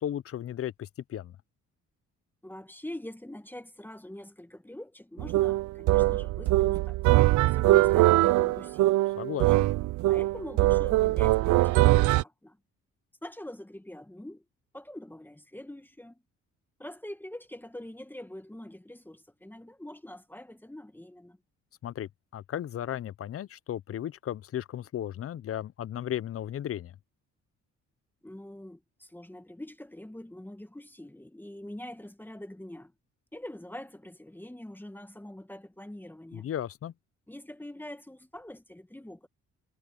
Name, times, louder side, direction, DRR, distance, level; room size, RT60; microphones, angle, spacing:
voice 1, 0.0-1.3 9.2-9.7 21.8-27.0 36.3-36.9, left 11 dB, 50° left, 0.7 m, -35 dB
voice 2, 2.4-7.0 7.4-9.0 10.1-12.6 13.2-14.4 14.7-16.2 16.8-21.4 28.2-32.9 33.3-36.5 37.3-39.3, left 1 dB, 5° left, 1.5 m, -44 dB
sound 1, 5.2-12.2, right 18 dB, 75° right, 0.5 m, -22 dB
cardioid pair, 90°, 30 cm